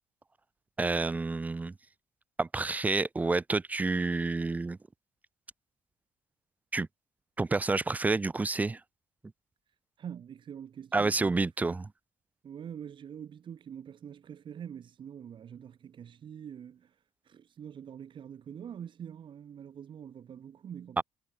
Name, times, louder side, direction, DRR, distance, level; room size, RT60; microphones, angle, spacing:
voice 1, 0.8-1.7 2.4-4.8 6.7-6.9 7.4-8.8 10.9-11.9 21.0-21.1, right 3 dB, 15° right, 0.4 m, -29 dB
voice 2, 10.0-11.8 12.4-16.9 17.2-21.0, right 8 dB, 50° right, 4.2 m, -45 dB
cardioid pair, 105°, 11 cm